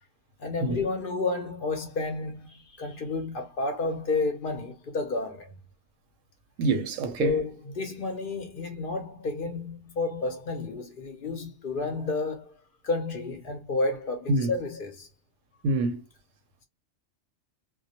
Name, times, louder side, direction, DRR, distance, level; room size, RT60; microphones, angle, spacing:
voice 1, 0.4-5.5 7.2-12.5 12.8-15.1, left 3 dB, 55° left, 0.6 m, -31 dB
voice 2, 6.6-7.4 14.3-14.5 15.6-16.0, right 2 dB, 90° right, 0.9 m, -26 dB
2.2 x 2.2 x 2.7 m
omnidirectional pair, 1.3 m